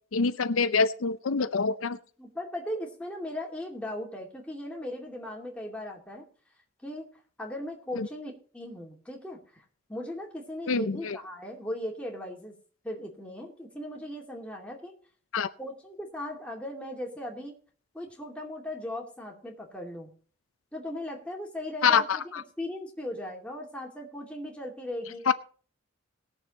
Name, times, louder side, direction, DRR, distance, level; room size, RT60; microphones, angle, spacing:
voice 1, 0.1-2.0 8.0-8.1 10.7-11.2 15.3-15.5 21.8-22.4 25.3-25.4, left 5 dB, 85° left, 13 dB, 0.6 m, -25 dB
voice 2, 2.2-6.3 6.8-7.1 7.4-9.6 9.9-12.5 12.8-14.9 15.6-17.6 17.9-20.1 20.7-22.2 22.6-25.3, left 1 dB, 5° left, -1 dB, 2.4 m, -38 dB
19.5 x 7.1 x 4.2 m, 0.42 s
head